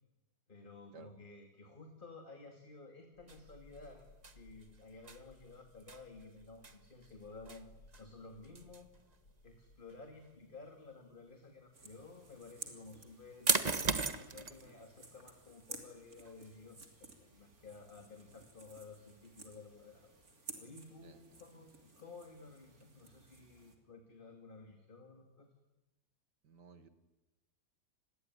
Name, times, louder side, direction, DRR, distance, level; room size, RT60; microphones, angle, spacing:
voice 1, 0.5-7.7 8.0-8.9 9.4-20.1 20.4-25.5, left 3 dB, 30° left, 4 dB, 2.5 m, -54 dB
sound 1, 3.1-9.8, left 2 dB, 90° left, 4.9 m, -63 dB
sound 2, 3.3-20.3, right 4 dB, 25° right, 1.2 m, -42 dB
sound 3, 11.7-23.8, right 3 dB, 55° right, 3.7 m, -55 dB
voice 2, 21.0-21.7 26.4-26.9, right 5 dB, 75° right, 10 dB, 2.5 m, -58 dB
28.5 x 21.5 x 9.7 m, 1.0 s
omnidirectional pair, 1.8 m